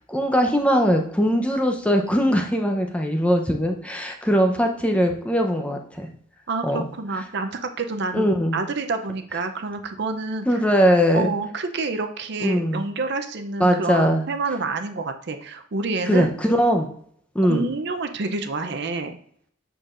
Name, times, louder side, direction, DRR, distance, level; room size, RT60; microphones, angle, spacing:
voice 1, 0.1-6.1 6.6-6.9 8.1-8.6 10.5-11.3 12.4-12.9 13.6-14.2 16.1-16.9 17.3-17.7, equal, 5° left, 3 dB, 0.7 m, -20 dB
voice 2, 6.5-10.6 11.1-16.3 17.4-19.2, right 3 dB, 60° right, 7 dB, 0.6 m, -28 dB
7.7 x 6.3 x 2.5 m, 0.64 s
head